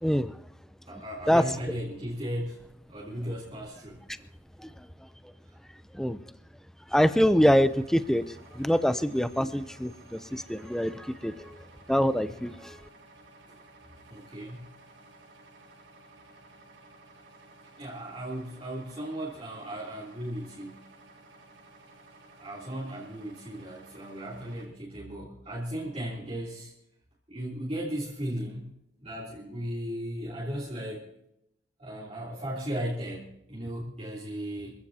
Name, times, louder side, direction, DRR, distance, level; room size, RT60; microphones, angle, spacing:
voice 1, 0.0-0.3 1.3-1.4 4.6-4.7 5.9-6.2 6.9-8.2 8.5-11.6 11.9-12.8, equal, 5° left, 11 dB, 0.5 m, -24 dB
voice 2, 0.9-2.6 2.9-4.0 13.5-13.6 14.1-14.7 17.8-20.8 22.4-26.7 27.3-28.7 29.0-31.1 31.8-34.7, equal, 35° right, -7 dB, 3.3 m, -36 dB
sound 1, 7.5-24.7, right 2 dB, 85° right, 7.4 m, -54 dB
25.5 x 15.5 x 2.9 m, 0.80 s
head